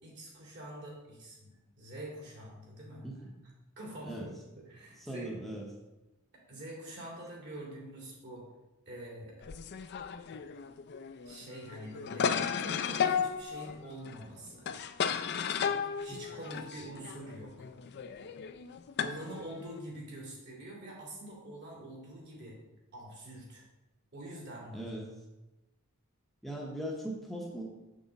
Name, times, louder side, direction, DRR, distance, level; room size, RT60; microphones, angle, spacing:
voice 1, 0.0-3.0 3.8-4.2 4.5-5.3 6.5-8.4 8.9-9.4 11.2-12.3 12.6-14.7 16.0-17.5 19.0-22.6 22.9-23.6 24.1-24.9, right 1 dB, 55° right, -3 dB, 2.8 m, -45 dB
voice 2, 3.0-3.3 4.0-4.3 4.9-5.7 16.1-16.2 24.7-25.1 26.4-27.6, right 1 dB, ahead, -2 dB, 0.8 m, -40 dB
sound 1, 9.4-19.8, left 7 dB, 50° left, 0.4 m, -34 dB
6.9 x 6.4 x 4.0 m, 1.0 s
head